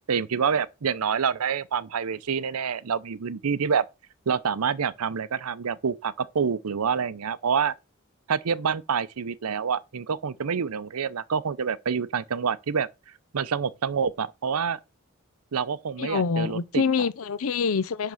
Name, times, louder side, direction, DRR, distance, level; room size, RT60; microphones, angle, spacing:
voice 1, 0.0-3.8 4.3-7.7 8.3-12.9 13.3-14.8 15.5-16.8, right 6 dB, 85° right, 0.6 m, -27 dB
voice 2, 16.0-18.1, left 5 dB, 70° left, 0.6 m, -25 dB
10.5 x 3.7 x 6.3 m
head